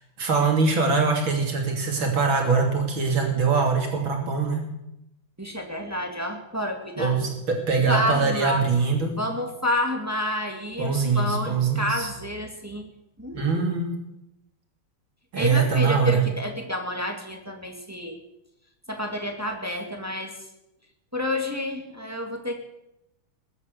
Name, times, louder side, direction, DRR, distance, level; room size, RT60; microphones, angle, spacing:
voice 1, 0.0-4.7 7.0-9.1 10.8-12.1 13.3-13.9 15.3-16.2, right 4 dB, 65° right, 2 dB, 3.4 m, -23 dB
voice 2, 5.4-7.2 7.9-8.7 9.2-12.9 13.2-13.7 15.3-18.2 18.9-20.4 21.1-22.6, left 1 dB, 10° right, 3 dB, 1.9 m, -29 dB
20.5 x 8.2 x 8.1 m, 0.87 s
omnidirectional pair, 2.3 m